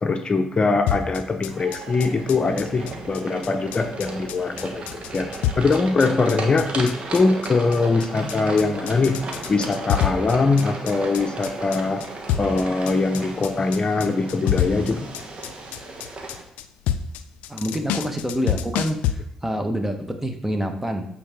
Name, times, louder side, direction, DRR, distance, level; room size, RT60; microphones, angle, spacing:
voice 1, 0.0-4.8 5.1-5.3 5.5-9.2 9.5-12.1 12.4-15.1, left 3 dB, 40° left, 6 dB, 0.7 m, -22 dB
sound 1, 0.9-19.1, left 10 dB, 85° left, 0.3 m, -28 dB
sound 2, 1.5-16.4, right 2 dB, 55° right, 1.4 m, -35 dB
voice 2, 17.5-21.1, equal, 10° right, 5 dB, 1.2 m, -27 dB
8.5 x 4.1 x 3.7 m, 0.86 s
supercardioid pair, 50°, 2 cm